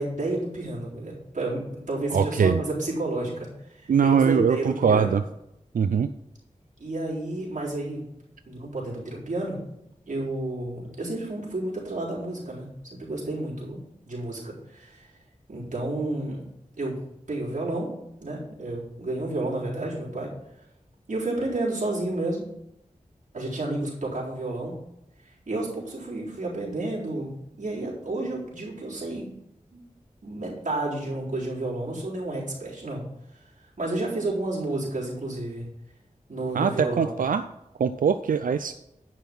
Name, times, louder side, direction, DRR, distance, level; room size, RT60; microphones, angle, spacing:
voice 1, 0.0-5.2 6.8-8.1 8.5-9.6 10.1-15.2 15.5-16.4 16.8-16.9 17.3-17.9 18.2-20.3 21.1-22.5 23.3-24.8 25.2-29.3 29.7-29.8 30.2-33.0 33.3-33.4 33.8-35.7 36.3-37.1, right 2 dB, 65° right, -5 dB, 4.0 m, -31 dB
voice 2, 2.1-2.6 3.9-5.2 5.7-6.1 36.5-37.4 37.8-38.7, right 6 dB, 85° right, 10 dB, 0.4 m, -22 dB
10.5 x 5.7 x 6.0 m, 0.82 s
wide cardioid pair, 60°, 14 cm